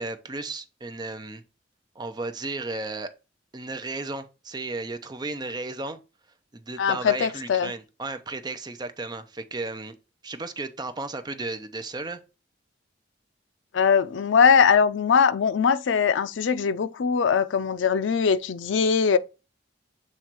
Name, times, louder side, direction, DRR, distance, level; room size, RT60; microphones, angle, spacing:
voice 1, 0.0-1.4 2.0-3.1 3.5-6.0 6.5-10.0 10.2-12.2, right 3 dB, 25° right, 0.6 m, -34 dB
voice 2, 6.8-7.7 13.7-19.2, left 6 dB, 80° left, 0.4 m, -21 dB
7.4 x 3.1 x 4.5 m
head